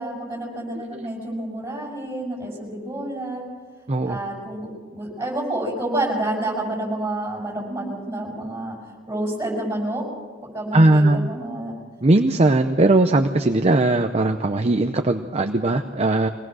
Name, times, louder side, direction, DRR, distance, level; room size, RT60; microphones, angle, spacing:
voice 1, 0.0-3.4 4.0-8.8 9.1-10.0 10.5-11.7, right 1 dB, 10° right, -2 dB, 6.9 m, -29 dB
voice 2, 10.7-11.3 12.0-16.3, right 2 dB, 35° right, 5 dB, 0.7 m, -19 dB
24.5 x 19.0 x 6.3 m, 1.5 s
head